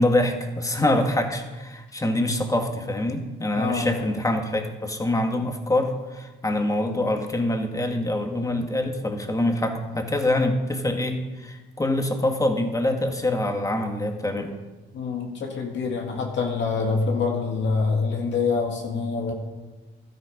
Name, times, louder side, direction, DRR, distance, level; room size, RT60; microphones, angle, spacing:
voice 1, 0.0-14.5, left 1 dB, 15° left, 4 dB, 2.0 m, -25 dB
voice 2, 3.6-4.0 14.9-19.3, left 4 dB, 65° left, 0 dB, 2.4 m, -26 dB
12.5 x 12.0 x 5.4 m, 1.2 s
cardioid pair, 90°, 20 cm